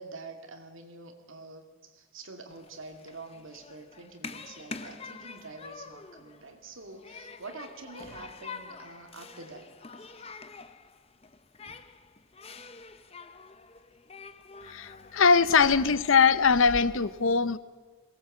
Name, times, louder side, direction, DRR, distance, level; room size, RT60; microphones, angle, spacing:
voice 1, 0.0-9.7 10.0-10.3, right 3 dB, 70° right, 5 dB, 2.4 m, -46 dB
Human group actions, 2.5-16.8, left 4 dB, 30° left, 0.8 m, -46 dB
voice 2, 14.7-17.6, left 5 dB, 70° left, 16 dB, 0.7 m, -22 dB
22.0 x 18.0 x 7.8 m, 1.3 s
head